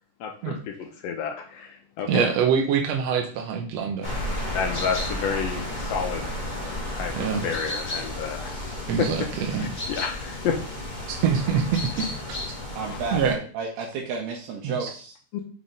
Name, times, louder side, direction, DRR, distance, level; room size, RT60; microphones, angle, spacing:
voice 1, 0.2-0.7 1.0-2.3 4.5-6.3 6.9-8.5 9.0-9.1 9.6-10.6 15.3-15.4, left 6 dB, 75° left, 4 dB, 1.5 m, -30 dB
voice 2, 2.1-4.2 6.6-6.8 7.1-7.5 8.9-9.7 11.1-12.4 13.1-13.3 14.6-14.9, right 7 dB, 70° right, 2 dB, 1.7 m, -25 dB
sound 1, 4.0-13.3, left 1 dB, 45° left, 0.5 m, -32 dB
voice 3, 12.8-15.1, right 4 dB, 90° right, -1 dB, 2.6 m, -32 dB
5.8 x 4.2 x 5.1 m, 0.42 s
omnidirectional pair, 3.7 m